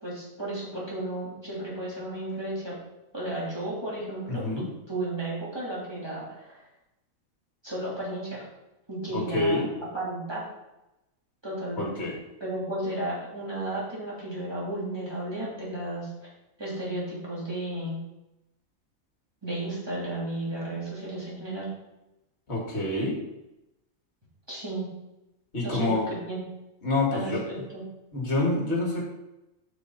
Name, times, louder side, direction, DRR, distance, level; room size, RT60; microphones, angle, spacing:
voice 1, 0.0-2.8 3.1-6.6 7.6-8.5 8.9-9.6 9.9-10.4 11.4-12.1 12.4-16.3 16.6-18.0 19.4-21.7 24.5-24.9 25.6-26.4 27.1-27.8, right 1 dB, 15° right, -7 dB, 3.0 m, -33 dB
voice 2, 4.3-4.7 9.1-9.7 11.8-12.1 22.5-23.2 25.5-26.1 26.8-27.4 28.1-29.0, left 2 dB, 50° left, -1 dB, 2.3 m, -27 dB
11.5 x 4.9 x 4.0 m, 0.93 s
omnidirectional pair, 1.5 m